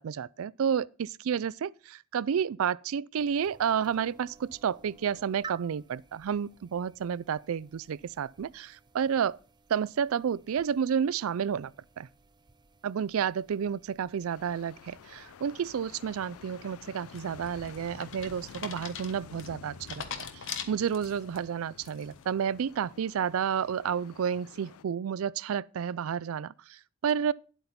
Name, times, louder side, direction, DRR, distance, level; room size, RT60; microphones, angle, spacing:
voice 1, 0.0-9.4 9.7-12.1 12.8-20.0 20.3-27.3, right 7 dB, 75° right, 0.4 m, -31 dB
sound 1, 3.2-19.3, right 6 dB, 20° right, 0.5 m, -55 dB
sound 2, 14.3-24.8, left 7 dB, 80° left, 0.4 m, -51 dB
sound 3, 17.1-21.4 21.8-22.2, left 7 dB, 60° left, 1.2 m, -41 dB
10.5 x 8.1 x 4.2 m
head